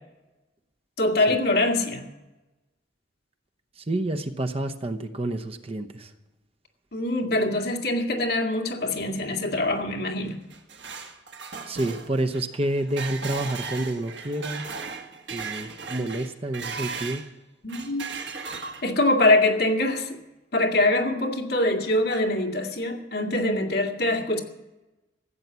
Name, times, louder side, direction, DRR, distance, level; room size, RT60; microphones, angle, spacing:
voice 1, 1.0-2.0 6.9-10.3 17.6-18.1 18.8-20.2 20.5-24.4, left 2 dB, 60° left, 2 dB, 2.2 m, -24 dB
voice 2, 3.9-6.1 11.7-14.7 15.3-17.2, right 1 dB, 30° right, 6 dB, 0.8 m, -29 dB
sound 1, 10.3-17.3 17.7-19.1, right 5 dB, 70° right, 1.5 m, -37 dB
15.0 x 9.7 x 8.2 m, 1.1 s
head